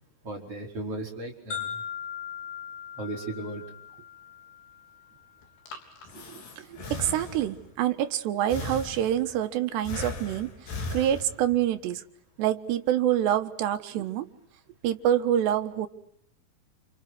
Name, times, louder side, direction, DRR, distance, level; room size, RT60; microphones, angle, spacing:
voice 1, 0.2-1.8 3.0-3.6, right 2 dB, 35° right, 0 dB, 5.6 m, -36 dB
sound 1, 1.5-5.5, left 8 dB, 55° left, 8.5 m, -39 dB
Breathing, 5.4-7.7 8.5-9.4 9.8-11.7, left 2 dB, 75° left, 5.9 m, -38 dB
voice 2, 6.3-10.5 10.9-12.0 12.4-14.3 14.8-15.9, right 11 dB, 80° right, 8 dB, 3.5 m, -26 dB
29.5 x 29.0 x 6.2 m, 0.72 s
omnidirectional pair, 4.9 m